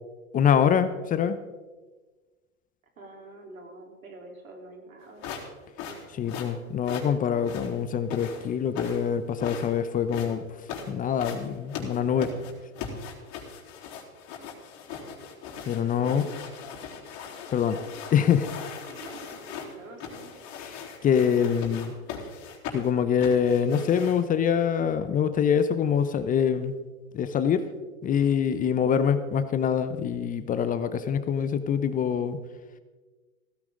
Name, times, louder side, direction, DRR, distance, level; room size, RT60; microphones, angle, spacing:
voice 1, 0.3-1.4 6.1-12.3 15.6-16.3 17.5-17.8 18.1-18.5 20.6-21.9 22.7-26.7 27.1-27.6 28.0-32.4, left 7 dB, 20° left, 11 dB, 0.7 m, -25 dB
voice 2, 3.0-5.3 12.1-12.5 16.0-16.3 18.9-20.3, right 2 dB, 90° right, 1 dB, 3.8 m, -46 dB
sound 1, 5.2-24.4, left 6 dB, 45° left, 3.7 m, -39 dB
16.0 x 14.5 x 3.8 m, 1.3 s
hypercardioid pair, 115°, 40 cm